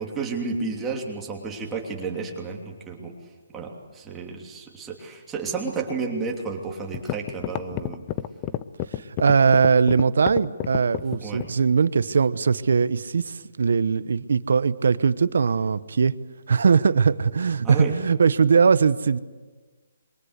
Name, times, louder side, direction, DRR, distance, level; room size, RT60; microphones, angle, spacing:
voice 1, 0.0-3.1 3.5-8.1 11.2-11.5 17.6-17.9, right 4 dB, 10° right, 3.0 m, -31 dB
sound 1, 6.5-6.6 6.9-11.6, left 13 dB, 25° left, 0.7 m, -29 dB
voice 2, 9.2-16.1 16.5-19.2, right 5 dB, 70° right, 1.0 m, -20 dB
26.5 x 23.0 x 8.2 m
hypercardioid pair, 165°, 0 cm